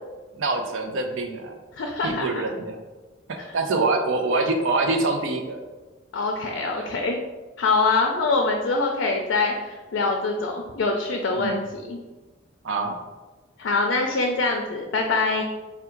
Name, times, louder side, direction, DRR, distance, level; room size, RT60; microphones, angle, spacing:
voice 1, 0.4-1.5 2.0-2.8 3.3-5.6 6.8-6.9 11.3-11.6 12.6-12.9, right 3 dB, 90° right, 4 dB, 0.6 m, -25 dB
voice 2, 1.7-2.3 6.1-7.2 7.6-12.0 13.6-15.4, left 3 dB, 65° left, 2 dB, 0.4 m, -24 dB
3.5 x 2.3 x 4.4 m, 1.2 s
head